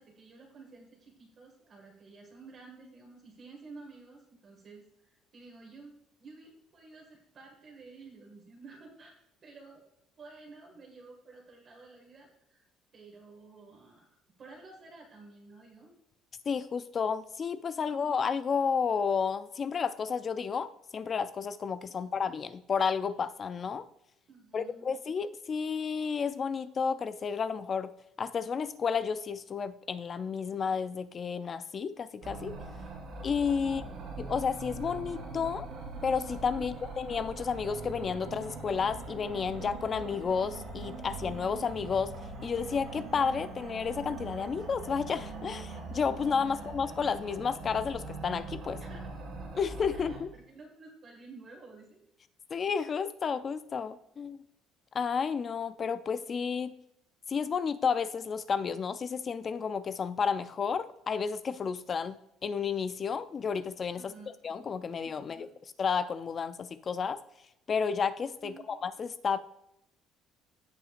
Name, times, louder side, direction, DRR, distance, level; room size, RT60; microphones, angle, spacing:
voice 1, 0.0-5.9 6.2-9.1 9.4-9.8 10.2-12.7 12.9-14.1 14.4-15.9 21.9-22.1 24.3-24.9 33.6-34.1 36.6-36.8 46.4-46.6 48.8-49.0 49.9-52.0 63.9-64.3 65.1-65.5 68.4-68.8, right 3 dB, 35° right, -1 dB, 1.9 m, -52 dB
voice 2, 16.5-23.8 24.5-27.9 28.2-32.5 33.2-33.8 34.2-35.7 36.0-42.1 42.4-48.8 49.5-50.3 52.5-54.4 54.9-56.7 57.3-62.2 62.4-64.1 64.4-65.5 65.8-67.2 67.7-69.4, left 6 dB, 30° left, 12 dB, 0.4 m, -31 dB
sound 1, 32.2-50.2, right 3 dB, 55° right, 2.5 m, -42 dB
16.5 x 5.7 x 2.5 m, 0.82 s
cardioid pair, 150°, 0 cm